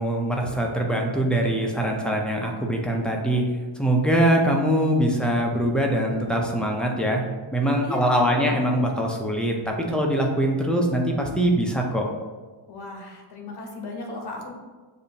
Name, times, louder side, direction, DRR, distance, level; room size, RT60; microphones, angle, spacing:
voice 1, 0.0-3.4 3.8-7.2 7.5-12.1, right 1 dB, ahead, -1 dB, 0.3 m, -23 dB
voice 2, 7.8-8.5 12.7-14.5, left 2 dB, 55° left, 2 dB, 0.9 m, -36 dB
6.6 x 2.6 x 2.7 m, 1.4 s
wide cardioid pair, 145°, 47 cm